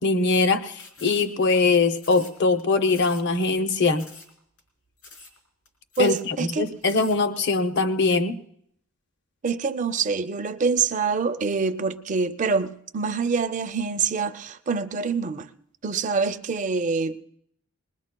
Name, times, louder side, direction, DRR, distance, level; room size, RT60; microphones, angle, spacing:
voice 1, 0.0-4.1 6.0-8.4, left 3 dB, 50° left, 0.6 m, -22 dB
sound 1, 0.8-1.6 2.0-2.6 2.9-3.3 3.5-3.6 4.0-4.3 4.6-4.7 5.0-5.4 5.6-5.7 5.9-6.3 6.7-7.2, left 3 dB, 85° left, 4.0 m, -46 dB
voice 2, 6.0-6.7 9.4-15.5 15.8-17.2, right 5 dB, 35° right, 0.4 m, -25 dB
21.5 x 20.5 x 2.2 m
head